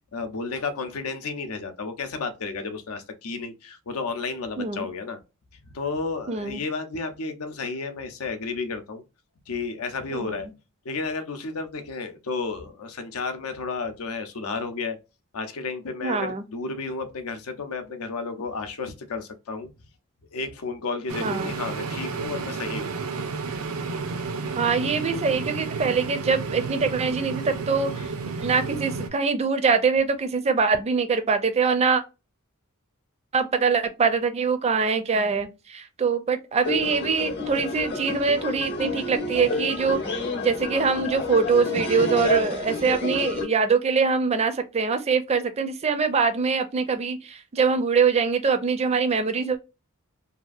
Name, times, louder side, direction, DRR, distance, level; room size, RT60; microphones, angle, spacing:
voice 1, 0.1-5.2 5.7-9.0 9.5-10.5 10.8-15.0 15.3-19.7 20.3-22.9 28.0-28.1, left 4 dB, 85° left, 0.6 m, -32 dB
voice 2, 4.6-4.9 6.3-6.6 10.1-10.4 16.0-16.4 21.2-21.5 24.6-28.1 28.4-32.0 33.3-49.6, right 5 dB, 30° right, 0.4 m, -23 dB
sound 1, 21.1-29.1, right 4 dB, 85° right, 0.5 m, -31 dB
sound 2, 36.6-43.4, left 2 dB, 50° left, 0.8 m, -29 dB
2.7 x 2.4 x 2.4 m
head